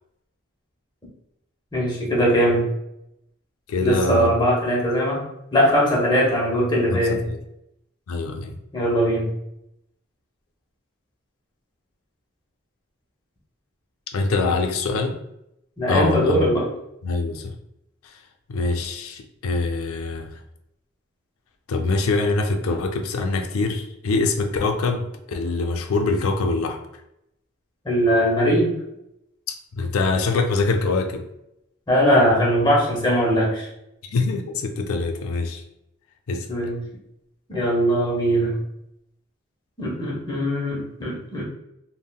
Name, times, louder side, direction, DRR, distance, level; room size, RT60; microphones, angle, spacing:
voice 1, 1.7-2.7 3.8-5.2 5.5-7.2 8.7-9.3 15.8-16.7 27.8-28.7 31.9-33.7 36.5-36.8 37.5-38.6 39.8-41.4, equal, 20° left, -4 dB, 0.6 m, -20 dB
voice 2, 3.7-4.3 6.9-7.4 8.1-8.6 14.1-15.2 15.9-16.5 17.0-17.5 18.5-20.4 21.7-26.8 29.7-31.3 34.0-35.6 36.3-36.5, left 3 dB, 85° left, 4 dB, 0.4 m, -24 dB
3.5 x 2.0 x 2.2 m, 0.83 s
head